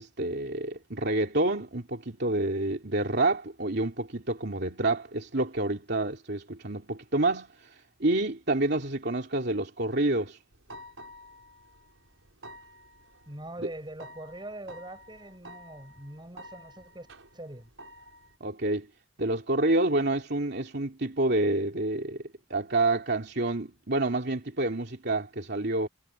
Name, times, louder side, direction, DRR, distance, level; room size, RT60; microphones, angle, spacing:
voice 1, 0.0-7.5 8.0-10.4 18.4-18.9 19.2-22.2 22.5-25.9, right 2 dB, 55° right, 2.9 m, -28 dB
sound 1, 10.5-18.4, equal, 80° right, 5.8 m, -50 dB
voice 2, 13.3-17.7, right 1 dB, 25° right, 7.4 m, -43 dB
head